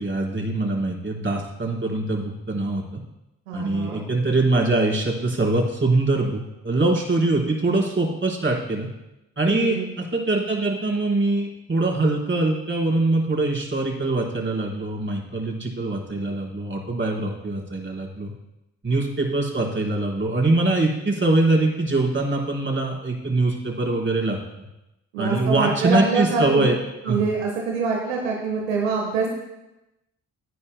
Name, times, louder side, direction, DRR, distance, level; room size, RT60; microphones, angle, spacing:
voice 1, 0.0-3.0 3.5-8.9 9.4-18.3 18.8-24.7 25.2-26.8 27.0-27.2, right 2 dB, 30° right, -3 dB, 4.4 m, -23 dB
voice 2, 3.5-4.0 9.5-9.9 25.1-26.7 27.0-29.3, right 4 dB, 90° right, 0 dB, 1.3 m, -25 dB
17.5 x 9.6 x 2.2 m, 0.94 s
hypercardioid pair, 45°, 38 cm